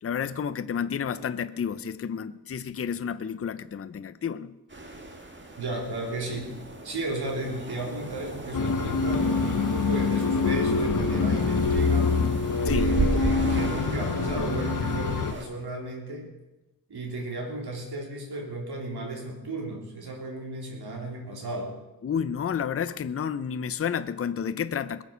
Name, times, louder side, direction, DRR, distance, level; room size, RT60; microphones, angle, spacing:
voice 1, 0.0-4.6 12.6-12.9 22.0-25.0, left 7 dB, 35° left, 0.5 m, -30 dB
sound 1, 4.7-15.5, right 3 dB, 30° right, 1.9 m, -34 dB
voice 2, 5.6-6.6 6.8-12.1 12.6-16.3 16.9-21.8, right 2 dB, 85° right, 3.5 m, -34 dB
sound 2, 8.5-15.3, left 4 dB, 55° left, 0.9 m, -25 dB
21.0 x 7.4 x 6.8 m
wide cardioid pair, 140°, 38 cm